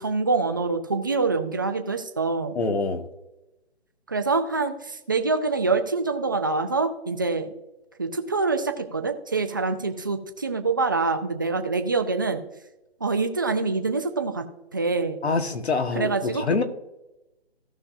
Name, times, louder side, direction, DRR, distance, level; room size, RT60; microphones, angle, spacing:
voice 1, 0.0-2.5 4.1-7.5 8.0-12.4 13.0-14.4 14.7-15.3 15.9-16.4, right 3 dB, 20° right, 7 dB, 0.5 m, -25 dB
voice 2, 2.5-3.0 15.2-16.6, left 4 dB, 80° left, 6 dB, 1.6 m, -25 dB
17.0 x 5.8 x 2.6 m, 0.98 s
hypercardioid pair, 160°, 32 cm